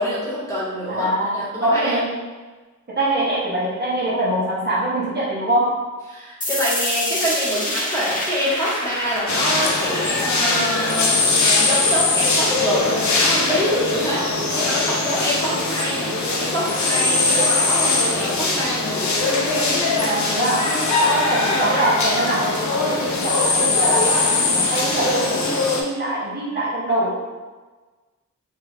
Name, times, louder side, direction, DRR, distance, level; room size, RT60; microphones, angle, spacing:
voice 1, 0.0-1.1 1.3-2.0 6.1-14.3 14.6-16.1 16.4-19.1, equal, 10° left, -8 dB, 1.1 m, -25 dB
voice 2, 0.9-2.2 2.9-5.8 20.0-20.7 21.0-27.2, right 1 dB, 35° right, -8 dB, 0.8 m, -23 dB
sound 1, 6.4-12.4, left 1 dB, 25° left, 0.7 m, -29 dB
sound 2, 9.3-25.8, left 3 dB, 65° left, 0.6 m, -21 dB
3.1 x 2.4 x 3.3 m, 1.3 s
wide cardioid pair, 105°, 31 cm